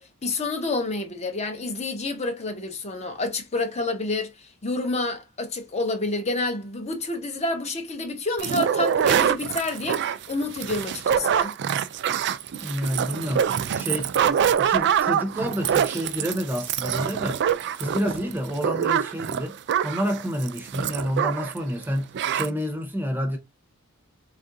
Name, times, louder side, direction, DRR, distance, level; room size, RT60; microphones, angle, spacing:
voice 1, 0.0-11.5, left 2 dB, 30° left, 0.7 m, -29 dB
sound 1, 8.4-21.6 21.8-21.9 22.1-22.5, right 8 dB, 50° right, 0.4 m, -25 dB
voice 2, 12.6-17.4 17.8-19.6 19.8-23.4, equal, 10° right, 0.7 m, -29 dB
3.4 x 2.5 x 3.8 m
head